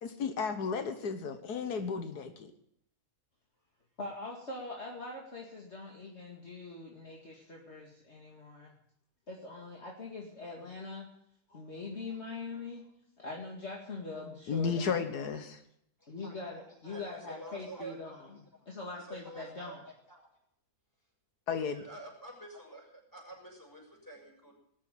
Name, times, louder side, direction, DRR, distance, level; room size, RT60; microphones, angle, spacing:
voice 1, 0.0-2.5 14.5-15.6 21.5-21.8, left 5 dB, 90° left, 7 dB, 1.8 m, -33 dB
voice 2, 4.0-8.7 9.3-11.1 11.5-12.8 13.2-14.9 16.1-18.2 18.7-19.8, left 3 dB, 45° left, -2 dB, 2.4 m, -42 dB
voice 3, 16.0-18.2 18.5-18.6 18.9-20.3 21.7-24.6, right 2 dB, 10° left, -2 dB, 6.3 m, -49 dB
20.0 x 7.5 x 9.2 m, 0.72 s
omnidirectional pair, 1.6 m